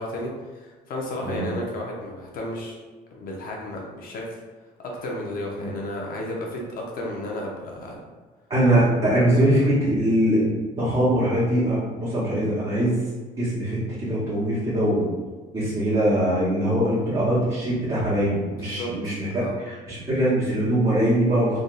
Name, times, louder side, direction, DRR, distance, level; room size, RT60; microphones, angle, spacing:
voice 1, 0.0-2.8 3.1-4.4 4.8-8.0 9.3-9.4 18.5-19.5, left 1 dB, 60° left, -1 dB, 0.8 m, -33 dB
voice 2, 8.5-10.5 10.8-13.0 13.4-15.1 15.5-19.3 19.6-21.6, right 1 dB, 30° right, -11 dB, 1.2 m, -22 dB
3.5 x 2.7 x 2.5 m, 1.3 s
cardioid pair, 110°, 17 cm